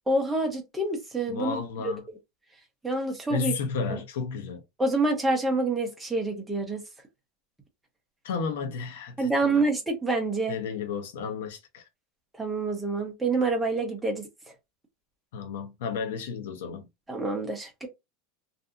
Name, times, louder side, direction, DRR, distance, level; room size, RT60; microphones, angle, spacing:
voice 1, 0.1-1.6 1.8-1.9 2.8-3.5 3.9-4.0 4.8-6.8 9.2-10.6 12.4-14.3 17.1-17.9, right 2 dB, 5° right, 0.6 m, -27 dB
voice 2, 1.3-2.0 3.3-4.6 8.2-9.6 10.5-11.8 15.3-16.9, left 5 dB, 85° left, 0.7 m, -32 dB
2.7 x 2.5 x 2.4 m
supercardioid pair, 170°, 0 cm